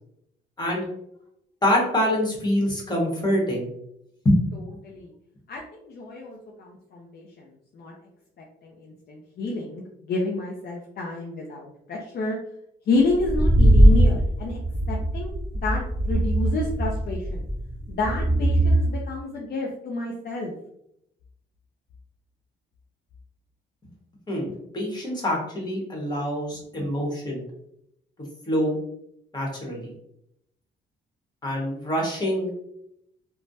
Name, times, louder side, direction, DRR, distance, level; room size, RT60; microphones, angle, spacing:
voice 1, 1.6-3.7 4.2-4.8 24.3-27.4 28.5-28.7 29.3-29.9 31.4-32.5, left 1 dB, 20° left, -2 dB, 1.3 m, -25 dB
voice 2, 5.5-7.5 7.7-7.9 8.4-12.4 12.9-14.6 14.9-17.4 17.9-20.5, left 2 dB, 55° left, -1 dB, 0.5 m, -29 dB
sound 1, 13.1-18.7, right 1 dB, 5° right, 1.5 m, -20 dB
3.2 x 2.1 x 2.6 m, 0.76 s
cardioid pair, 90°, 20 cm